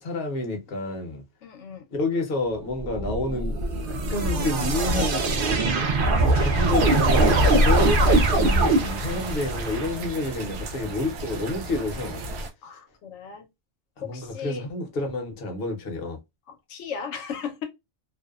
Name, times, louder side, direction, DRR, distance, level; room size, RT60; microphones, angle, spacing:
voice 1, 0.0-1.2 1.9-3.6 3.9-5.3 6.2-12.2 14.0-16.2, left 2 dB, 60° left, 0.8 m, -29 dB
voice 2, 1.4-1.8 12.6-13.5 14.0-14.7 16.5-17.6, left 6 dB, 85° left, 1.0 m, -36 dB
sound 1, 2.8-9.9, right 2 dB, 60° right, 0.6 m, -22 dB
sound 2, 6.7-12.5, equal, 85° right, 0.9 m, -30 dB
2.5 x 2.1 x 2.3 m
omnidirectional pair, 1.2 m